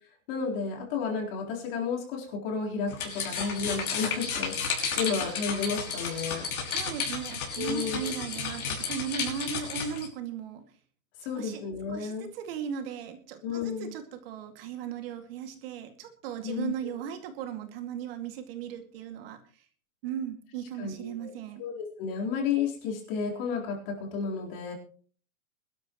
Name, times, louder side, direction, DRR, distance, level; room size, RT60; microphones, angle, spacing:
voice 1, 0.3-6.5 7.6-8.1 11.2-12.3 13.4-13.9 16.4-16.9 20.8-24.7, left 5 dB, 40° left, 0 dB, 4.2 m, -32 dB
sound 1, 2.9-10.1, left 5 dB, 85° left, 5.8 m, -33 dB
voice 2, 6.7-10.6 11.3-11.6 11.9-19.4 20.0-21.6, right 8 dB, 45° right, 6 dB, 2.3 m, -37 dB
22.0 x 12.5 x 3.1 m, 0.42 s
supercardioid pair, 160°, 42 cm